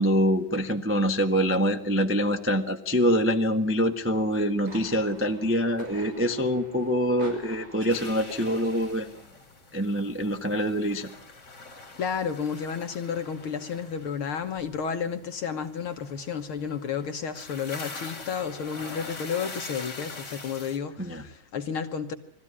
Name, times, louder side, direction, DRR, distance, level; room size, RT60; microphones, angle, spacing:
voice 1, 0.0-9.1 9.7-11.1 21.0-21.2, equal, 10° right, 0.5 m, -25 dB
sound 1, 4.3-9.3, right 2 dB, 70° right, 7.3 m, -46 dB
sound 2, 7.9-20.8, left 3 dB, 25° left, 2.9 m, -44 dB
voice 2, 12.0-22.2, left 6 dB, 60° left, 1.6 m, -32 dB
22.5 x 15.0 x 9.7 m
omnidirectional pair, 3.4 m